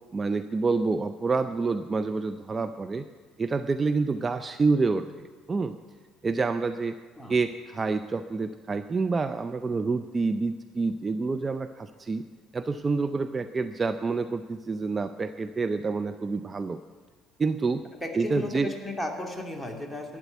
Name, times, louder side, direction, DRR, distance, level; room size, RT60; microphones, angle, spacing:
voice 1, 0.1-3.1 3.4-5.8 6.2-7.0 7.3-12.2 12.5-16.8 17.4-17.8 18.1-18.7, right 4 dB, 30° right, 10 dB, 0.5 m, -28 dB
voice 2, 18.0-20.2, left 1 dB, 5° left, 2 dB, 2.3 m, -35 dB
12.0 x 9.1 x 7.9 m, 1.5 s
figure-of-eight pair, 55°, 0 cm